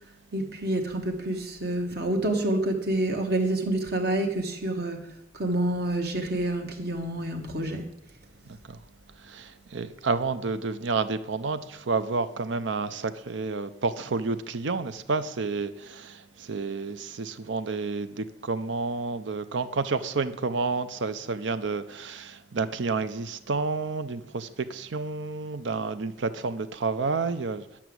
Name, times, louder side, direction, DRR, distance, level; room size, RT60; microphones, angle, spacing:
voice 1, 0.3-7.9, right 1 dB, 55° right, 1.2 m, -28 dB
voice 2, 9.2-27.7, right 4 dB, 75° right, 0.6 m, -30 dB
10.0 x 6.0 x 7.7 m
head